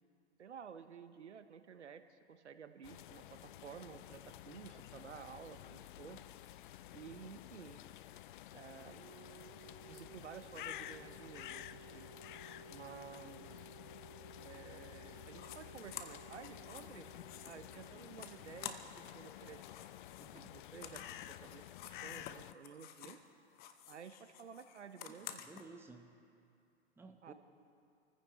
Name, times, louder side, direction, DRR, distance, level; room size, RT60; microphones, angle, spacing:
voice 1, 0.4-6.2 6.9-7.8 8.5-9.0 9.9-12.1 12.7-13.7 14.4-17.1 17.4-19.6 20.5-23.2 23.9-25.4 27.2-27.3, right 7 dB, 80° right, 10 dB, 1.0 m, -53 dB
sound 1, 2.8-22.5, left 13 dB, 45° left, 0.5 m, -52 dB
sound 2, 8.9-19.5, right 9 dB, 50° right, 1.2 m, -59 dB
sound 3, 15.3-15.6 15.9-19.1 19.4-23.3 23.5-25.6, left 10 dB, 25° left, 0.9 m, -51 dB
voice 2, 20.2-20.6 25.0-26.1 27.0-27.3, right 3 dB, 5° right, 4 dB, 1.0 m, -56 dB
27.5 x 15.0 x 3.1 m, 2.6 s
figure-of-eight pair, 110°, 34 cm